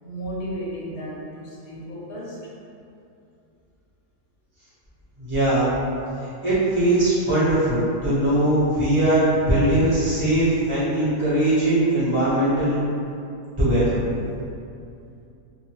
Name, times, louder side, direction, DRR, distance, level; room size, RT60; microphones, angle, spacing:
voice 1, 0.0-2.5, equal, 80° left, -5 dB, 1.1 m, -34 dB
voice 2, 5.2-5.7 6.2-12.8 13.6-14.0, right 1 dB, 25° right, -13 dB, 1.0 m, -20 dB
2.8 x 2.2 x 3.0 m, 2.6 s
omnidirectional pair, 1.5 m